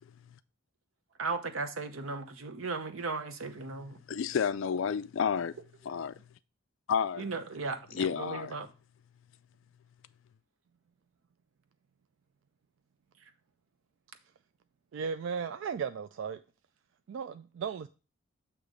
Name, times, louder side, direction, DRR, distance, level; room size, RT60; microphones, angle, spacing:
voice 1, 1.2-4.0 7.2-8.7, right 3 dB, 80° right, 0.8 m, -36 dB
voice 2, 4.1-5.5 5.8-6.1 6.9-7.3 7.9-8.5, left 7 dB, 70° left, 0.3 m, -30 dB
voice 3, 14.9-16.4 17.1-17.9, right 6 dB, 65° right, 0.3 m, -35 dB
8.0 x 3.0 x 4.9 m
head